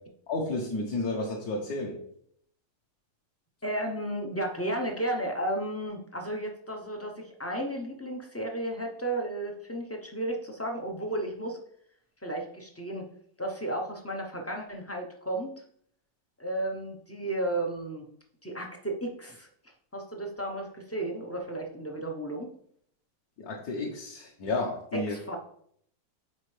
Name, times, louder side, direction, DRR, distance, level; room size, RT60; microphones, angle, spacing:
voice 1, 0.3-2.0 23.4-25.2, left 2 dB, 60° left, -1 dB, 1.5 m, -32 dB
voice 2, 3.6-11.6 12.2-13.0 13.4-15.5 16.4-18.1 18.4-19.5 19.9-22.5 25.1-25.4, right 1 dB, 25° left, 1 dB, 0.3 m, -33 dB
9.6 x 4.3 x 3.3 m, 0.65 s
omnidirectional pair, 2.0 m